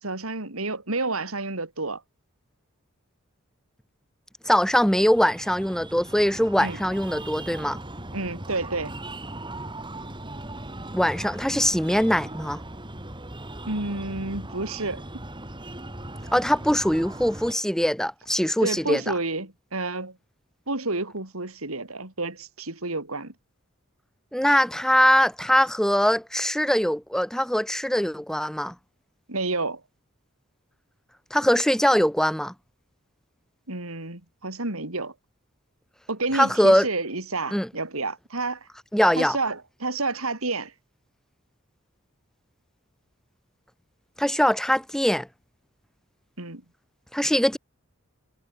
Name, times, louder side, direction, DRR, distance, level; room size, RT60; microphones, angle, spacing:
voice 1, 0.0-2.0 6.6-6.8 8.1-8.9 13.7-15.2 18.6-20.2 20.7-23.3 29.3-29.8 33.7-35.1 36.1-38.7 39.2-40.7 46.4-46.6, right 3 dB, 90° right, 4.3 m, -30 dB
voice 2, 4.5-7.8 10.9-12.6 16.3-19.1 24.3-28.7 31.3-32.5 36.3-36.9 37.5-37.7 38.9-39.4 44.2-45.3 47.1-47.6, equal, 5° left, 2.0 m, -22 dB
Breathing, 4.5-17.5, right 1 dB, 25° right, 5.2 m, -39 dB
head